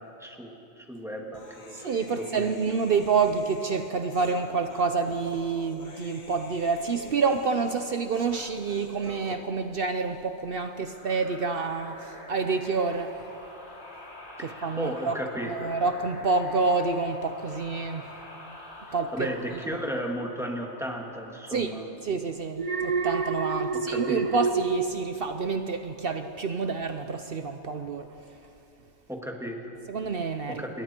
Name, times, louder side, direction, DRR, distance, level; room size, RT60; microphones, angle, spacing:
voice 1, 0.0-2.6 14.4-15.7 19.1-21.9 23.7-24.2 29.1-29.7 30.5-30.8, equal, ahead, 0 dB, 2.2 m, -35 dB
Human voice, 1.3-9.4, left 3 dB, 40° left, 1.4 m, -47 dB
voice 2, 1.7-13.2 14.4-15.2 15.5-18.1 18.9-19.3 21.5-21.7 22.0-28.1 29.9-30.6, right 4 dB, 55° right, 8 dB, 0.9 m, -28 dB
sound 1, 10.8-22.1, left 1 dB, 70° left, 3.2 m, -46 dB
Alarm, 22.6-25.9 26.3-26.6, right 5 dB, 35° right, 0.8 m, -29 dB
27.5 x 22.5 x 4.5 m, 2.8 s
omnidirectional pair, 1.2 m